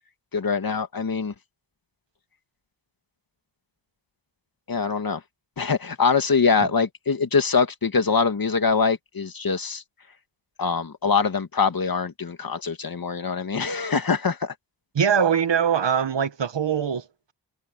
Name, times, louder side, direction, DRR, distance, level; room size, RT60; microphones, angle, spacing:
voice 1, 0.3-1.3 4.7-5.2 5.6-9.8 10.6-14.5, left 5 dB, 50° left, 2.2 m, -23 dB
voice 2, 14.9-17.3, right 7 dB, 70° right, 1.7 m, -23 dB
wide cardioid pair, 75°, 45 cm